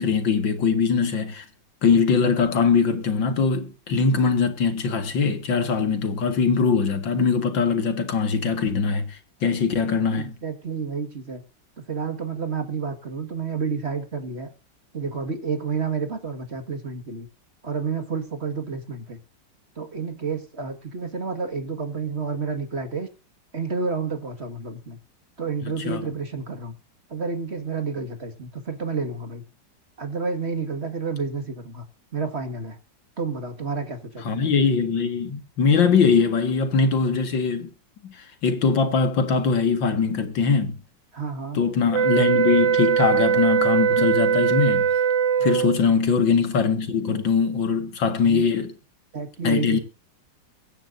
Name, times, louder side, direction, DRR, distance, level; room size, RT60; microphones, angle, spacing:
voice 1, 0.0-1.5 1.8-10.3 25.6-26.0 34.2-37.7 38.0-40.8 41.5-44.9 45.4-48.7 49.4-49.8, left 5 dB, 85° left, 2.6 m, -22 dB
voice 2, 10.1-11.4 11.8-14.5 14.9-17.3 17.6-19.2 19.8-23.1 23.5-25.0 25.4-26.7 27.1-29.4 30.0-31.8 32.1-32.8 33.2-34.5 41.1-41.6 45.4-45.7 48.2-48.5 49.1-49.8, right 5 dB, 35° right, 2.1 m, -30 dB
sound 1, 41.9-45.8, right 8 dB, 75° right, 1.5 m, -21 dB
23.5 x 10.0 x 2.7 m
omnidirectional pair, 2.0 m